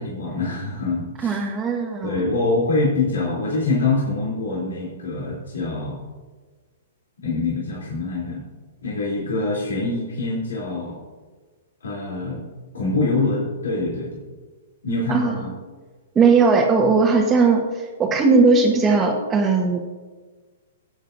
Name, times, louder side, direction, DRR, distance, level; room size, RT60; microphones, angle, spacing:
voice 1, 0.0-1.4 2.0-6.0 7.2-8.4 8.8-11.0 11.8-12.4 12.7-14.2 14.8-15.5, left 3 dB, 85° left, -6 dB, 3.2 m, -24 dB
voice 2, 1.2-2.3 15.1-15.3 16.1-19.8, right 4 dB, 20° right, -1 dB, 1.2 m, -18 dB
16.5 x 8.9 x 2.6 m, 1.4 s
hypercardioid pair, 125°, 0 cm